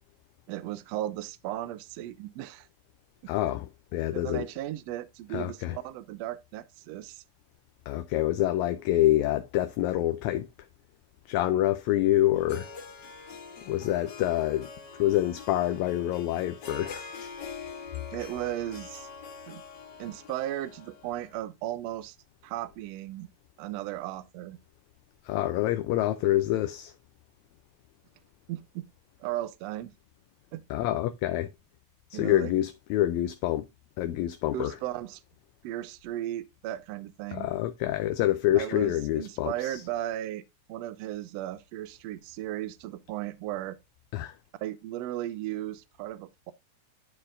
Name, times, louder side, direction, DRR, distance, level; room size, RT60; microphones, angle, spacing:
voice 1, 0.5-2.7 4.1-7.2 18.1-19.1 19.5-19.6 20.0-22.2 22.4-23.3 23.6-24.6 28.5-28.9 29.2-29.9 30.5-30.6 32.1-32.5 34.5-35.2 35.6-37.5 38.5-40.4 40.7-43.8 44.6-46.5, right 13 dB, 80° right, 1.5 m, -36 dB
voice 2, 3.3-4.4 5.3-5.8 7.9-10.5 11.3-12.7 13.6-14.7 15.0-17.3 25.2-26.9 30.7-31.5 32.1-33.7 34.0-34.8 37.3-39.8 44.1-44.4, left 14 dB, 80° left, 1.8 m, -27 dB
Harp, 12.4-21.4, left 5 dB, 55° left, 1.3 m, -44 dB
11.5 x 4.4 x 2.5 m
omnidirectional pair, 3.5 m